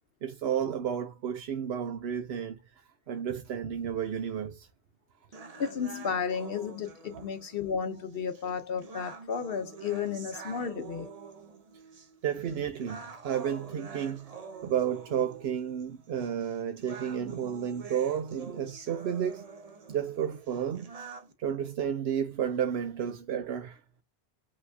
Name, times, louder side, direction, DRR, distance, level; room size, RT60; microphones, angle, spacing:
voice 1, 0.2-4.7 7.1-7.2 12.2-19.4 19.9-21.1 21.4-23.8, right 8 dB, 75° right, 0.8 m, -32 dB
sound 1, 5.3-21.3, right 5 dB, 40° right, 0.8 m, -47 dB
voice 2, 5.6-11.1, left 6 dB, 65° left, 0.8 m, -33 dB
5.7 x 3.1 x 2.6 m
omnidirectional pair, 1.1 m